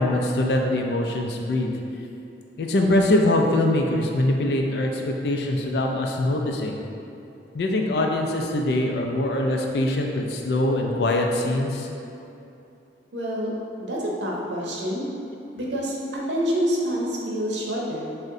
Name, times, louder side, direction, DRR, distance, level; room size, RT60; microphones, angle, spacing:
voice 1, 0.0-1.7 2.6-6.8 7.5-11.9, left 1 dB, 70° left, 1 dB, 0.4 m, -23 dB
voice 2, 13.1-13.5 13.8-15.1 15.5-18.1, equal, 80° right, -3 dB, 0.7 m, -27 dB
6.2 x 2.1 x 2.6 m, 2.7 s
head